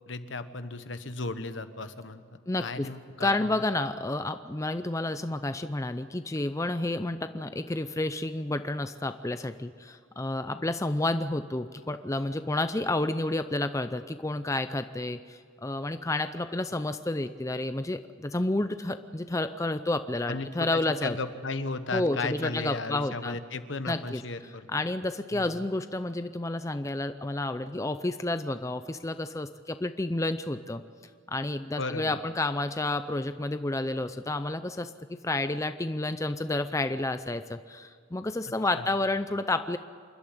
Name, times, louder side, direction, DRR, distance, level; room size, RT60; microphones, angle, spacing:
voice 1, 0.0-2.2 2.6-3.3 20.3-24.7 25.3-25.6 31.8-32.2 38.7-38.9, left 3 dB, 65° left, 10 dB, 1.2 m, -35 dB
voice 2, 2.5-2.9 3.2-21.2 21.9-23.4 23.9-24.2 24.7-30.8 31.3-39.8, left 2 dB, 15° left, 10 dB, 0.5 m, -30 dB
27.5 x 12.5 x 9.9 m, 2.1 s
head